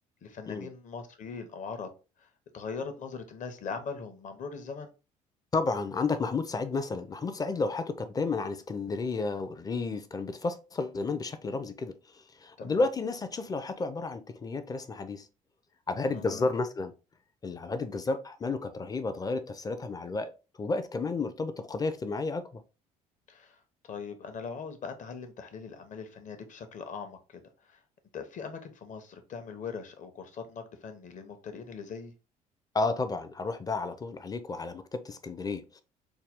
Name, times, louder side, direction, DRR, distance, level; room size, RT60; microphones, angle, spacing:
voice 1, 0.2-1.9 2.2-2.3 2.5-4.9 12.6-12.8 16.1-16.5 23.3-23.6 23.9-27.4 27.7-27.8 28.1-32.1, left 5 dB, 40° left, 0.9 m, -40 dB
voice 2, 5.5-15.3 15.9-16.9 17.4-20.3 20.6-22.6 32.7-35.8, left 3 dB, 20° left, 0.5 m, -32 dB
4.6 x 2.3 x 3.5 m
figure-of-eight pair, 55°, 20 cm